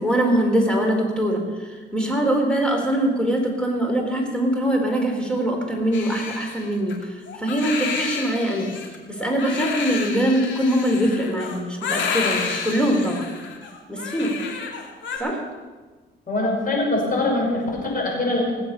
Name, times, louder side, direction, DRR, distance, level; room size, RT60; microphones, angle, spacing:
voice 1, 0.0-7.0 7.4-8.7 9.1-13.3 13.9-14.3 15.2-15.4, right 1 dB, 5° left, 1 dB, 3.9 m, -22 dB
Crying sobbing, 5.9-15.2, left 5 dB, 70° left, 2.4 m, -30 dB
voice 2, 16.3-18.5, left 2 dB, 45° left, -1 dB, 5.7 m, -23 dB
19.0 x 7.9 x 7.0 m, 1.3 s
cardioid pair, 90°, 20 cm